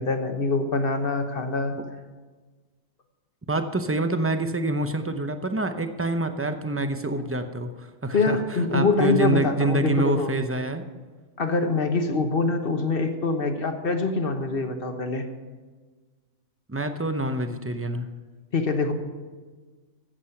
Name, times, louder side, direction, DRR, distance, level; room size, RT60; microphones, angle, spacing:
voice 1, 0.0-1.8 8.1-10.3 11.4-15.3 18.5-18.9, left 3 dB, 45° left, 6 dB, 1.3 m, -24 dB
voice 2, 3.5-10.8 16.7-18.1, right 2 dB, 15° right, 7 dB, 0.5 m, -27 dB
14.0 x 8.2 x 5.8 m, 1.4 s
omnidirectional pair, 1.4 m